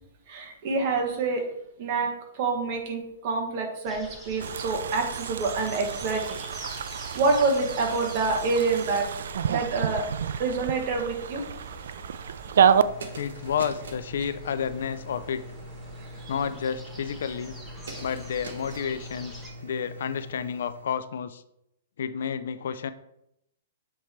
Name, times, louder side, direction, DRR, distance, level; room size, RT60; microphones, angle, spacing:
voice 1, 0.3-1.4 1.8-2.1 2.3-6.4 7.1-9.2 9.5-10.1 10.4-11.4 16.2-16.3, right 3 dB, 40° right, 3 dB, 1.3 m, -27 dB
sound 1, 3.8-19.5, equal, 5° right, 1.0 m, -46 dB
sound 2, 4.4-12.8, right 8 dB, 70° right, 0.3 m, -28 dB
sound 3, 12.8-20.9, right 1 dB, 90° right, 1.2 m, -42 dB
voice 2, 13.2-15.4 16.3-17.5 18.0-21.4 22.0-22.9, left 7 dB, 70° left, 13 dB, 0.4 m, -31 dB
7.3 x 3.1 x 4.3 m, 0.80 s
hypercardioid pair, 160°, 0 cm